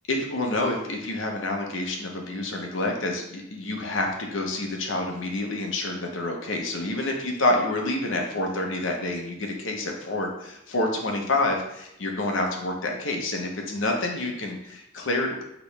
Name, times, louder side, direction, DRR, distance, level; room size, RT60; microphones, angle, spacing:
voice 1, 0.1-15.4, left 2 dB, 65° left, 1 dB, 0.8 m, -28 dB
5.0 x 3.1 x 3.2 m, 0.81 s
head